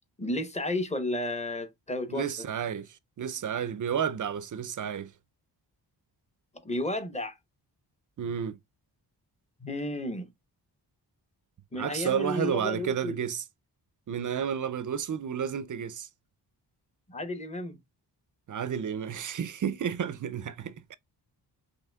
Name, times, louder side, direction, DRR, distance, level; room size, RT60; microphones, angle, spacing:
voice 1, 0.2-2.3 6.6-7.4 9.6-10.3 11.7-13.2 17.1-17.8, left 1 dB, 15° left, 0.8 m, -32 dB
voice 2, 2.1-5.1 8.2-8.6 11.7-13.4 14.1-16.1 18.5-20.9, right 8 dB, 45° right, 0.4 m, -31 dB
5.6 x 3.2 x 2.2 m
wide cardioid pair, 120°, 42 cm